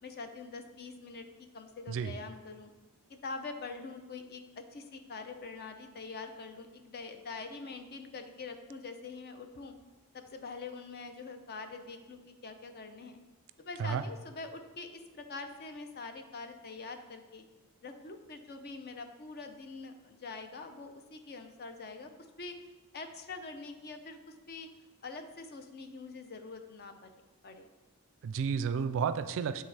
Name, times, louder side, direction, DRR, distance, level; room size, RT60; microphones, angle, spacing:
voice 1, 0.0-2.7 3.1-9.7 10.1-13.2 13.6-17.4 17.8-22.1 22.4-22.5 22.9-24.7 25.0-26.9 27.4-27.7, left 4 dB, 45° left, 7 dB, 0.6 m, -44 dB
voice 2, 28.2-29.6, right 6 dB, 60° right, 12 dB, 0.3 m, -31 dB
8.7 x 3.8 x 3.3 m, 1.2 s
head